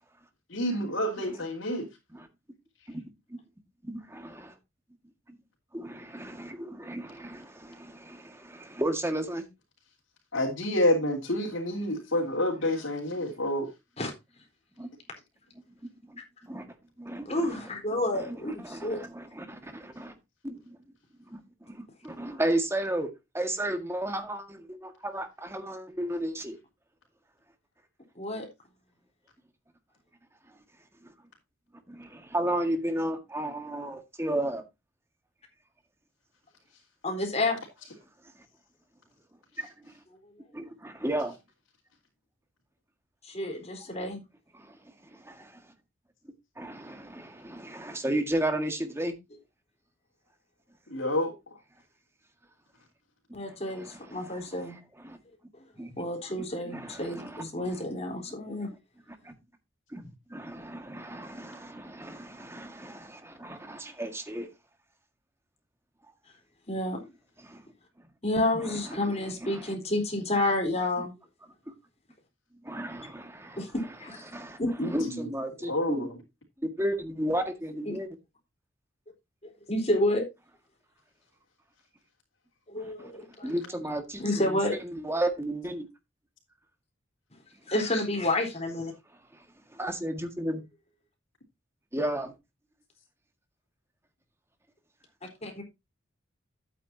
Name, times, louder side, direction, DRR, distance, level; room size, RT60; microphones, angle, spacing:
voice 1, 0.5-1.8 10.3-13.7 50.9-51.3 74.8-75.3 75.6-76.1, left 1 dB, 75° left, 3.3 m, -28 dB
voice 2, 2.9-3.4 3.8-4.5 5.7-9.5 13.2-13.3 14.8-14.9 16.1-16.7 17.0-17.6 18.1-20.1 20.4-20.8 21.3-26.6 31.9-34.6 39.6-39.9 40.5-41.4 44.5-44.8 45.1-45.5 46.6-49.1 53.7-54.4 55.0-55.2 55.8-56.0 56.6-57.7 58.5-58.7 59.2-59.3 59.9-64.5 67.4-67.6 68.6-69.1 69.4-69.7 72.6-73.6 74.3-76.1 76.6-78.1 82.8-83.1 83.4-85.9 89.7-90.6 91.9-92.3, right 1 dB, 15° right, 1.8 m, -34 dB
voice 3, 17.3-19.0 28.2-28.5 37.0-37.6 43.2-44.2 53.3-54.8 56.0-58.7 66.7-67.0 68.2-71.1 73.6-74.2 74.6-74.7 77.9-78.0 79.7-80.2 82.7-83.5 84.2-84.7 87.7-88.9 95.4-95.6, left 1 dB, 35° left, 3.9 m, -29 dB
11.5 x 9.0 x 2.8 m
head